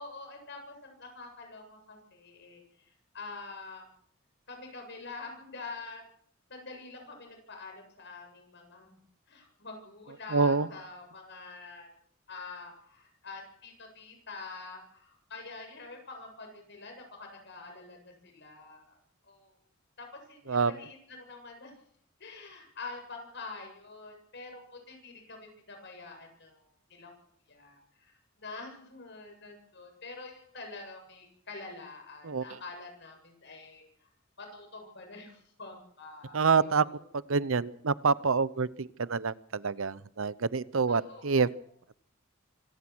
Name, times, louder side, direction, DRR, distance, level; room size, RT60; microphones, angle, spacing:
voice 1, 0.0-3.9 4.5-6.0 6.5-9.0 9.3-11.9 12.3-19.0 19.3-19.5 20.0-21.7 22.2-25.4 25.7-27.1 27.5-28.1 28.4-33.8 34.4-37.1 40.9-41.5, left 3 dB, 55° left, 3 dB, 7.8 m, -46 dB
voice 2, 10.3-10.7 20.5-20.7 32.2-32.6 36.3-36.9 37.1-41.5, right 5 dB, 70° right, 19 dB, 0.8 m, -27 dB
25.5 x 17.0 x 6.2 m, 0.63 s
head